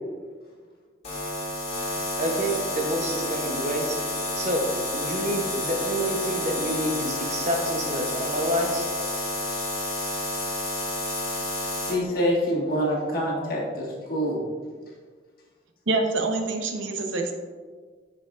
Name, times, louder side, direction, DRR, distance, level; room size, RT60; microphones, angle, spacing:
sound 1, 1.0-11.9, left 1 dB, 35° left, 1.8 m, -30 dB
voice 1, 2.2-4.0 4.3-8.9, equal, 35° right, 2 dB, 0.8 m, -28 dB
voice 2, 11.9-14.4, equal, 50° left, -3 dB, 1.6 m, -26 dB
voice 3, 15.9-17.3, right 3 dB, 80° right, 3 dB, 0.8 m, -26 dB
9.9 x 5.0 x 2.4 m, 1.6 s
head